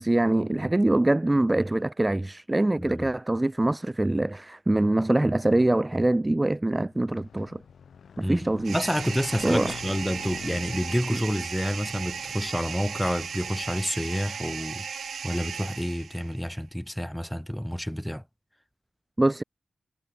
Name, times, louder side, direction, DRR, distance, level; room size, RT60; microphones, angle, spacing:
voice 1, 0.0-7.6 8.2-8.8 9.4-9.7 11.1-11.2 19.2-19.4, right 1 dB, 15° right, 0.6 m, -24 dB
voice 2, 2.8-3.1 8.2-8.4 8.7-18.2, equal, ahead, 4.2 m, -29 dB
Motorcycle / Engine, 6.7-14.1, left 7 dB, 85° left, 6.4 m, -45 dB
sound 1, 8.6-16.4, right 7 dB, 90° right, 1.3 m, -36 dB
wide cardioid pair, 125°, 0 cm